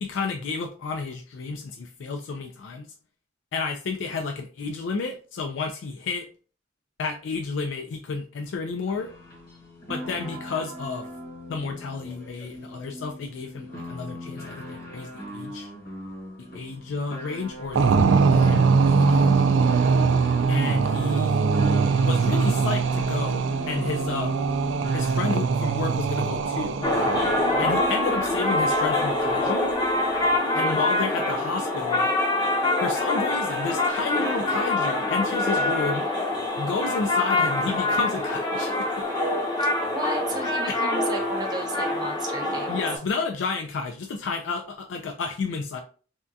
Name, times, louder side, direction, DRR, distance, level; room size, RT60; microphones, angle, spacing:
voice 1, 0.0-2.9 3.5-6.3 7.0-9.1 9.9-11.1 11.5-15.7 16.5-19.4 20.5-21.4 22.1-24.4 24.9-26.9 27.6-29.7 30.5-32.1 32.8-36.1 36.6-39.1 40.7-40.8 42.7-45.8, left 4 dB, 70° left, 4 dB, 0.3 m, -31 dB
sound 1, 8.9-25.6, equal, 50° left, 1.1 m, -40 dB
sound 2, 17.8-27.6, right 5 dB, 70° right, 0.3 m, -22 dB
sound 3, 26.8-43.0, left 2 dB, 20° left, 0.6 m, -25 dB
voice 2, 39.9-42.8, right 1 dB, 20° right, 1 dB, 0.6 m, -34 dB
3.5 x 2.2 x 2.6 m, 0.39 s
head